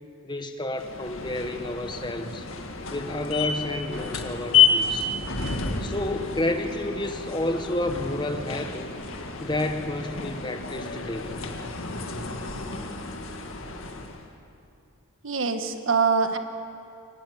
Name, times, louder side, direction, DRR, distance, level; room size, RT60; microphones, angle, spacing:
voice 1, 0.2-2.4 2.9-5.1 5.8-8.9 9.4-11.4, left 1 dB, 20° left, 6 dB, 1.4 m, -30 dB
sound 1, 0.8-14.3, left 6 dB, 70° left, 2.0 m, -29 dB
voice 2, 15.2-16.4, right 5 dB, 65° right, 7 dB, 1.6 m, -23 dB
24.0 x 18.0 x 9.5 m, 2.6 s
head